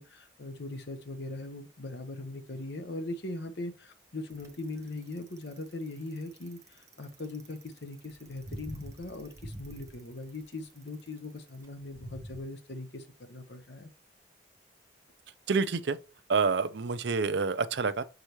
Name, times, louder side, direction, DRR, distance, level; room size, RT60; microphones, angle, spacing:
voice 1, 0.0-13.9, left 2 dB, 65° left, 0.9 m, -40 dB
Bicycle, 4.3-12.4, right 1 dB, 15° right, 0.7 m, -47 dB
voice 2, 15.5-16.0 16.3-18.0, right 4 dB, 70° right, 0.5 m, -27 dB
6.4 x 4.9 x 3.0 m
head